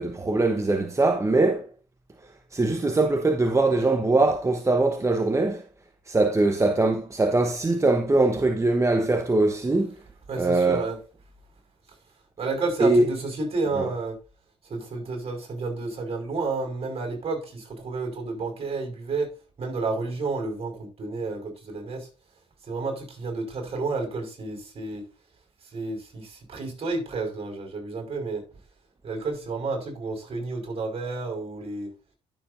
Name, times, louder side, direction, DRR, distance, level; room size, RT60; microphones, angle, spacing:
voice 1, 0.0-1.7 2.5-5.6 6.1-9.9 10.4-10.9 12.8-13.0 13.8-13.9, right 2 dB, 20° right, 1.0 m, -22 dB
voice 2, 10.3-11.0 12.4-14.2 14.6-19.3 19.6-22.1 22.6-25.0 25.6-28.4 29.0-31.9, right 3 dB, 40° right, 5.4 m, -31 dB
11.5 x 7.1 x 2.6 m
supercardioid pair, 60°, 15 cm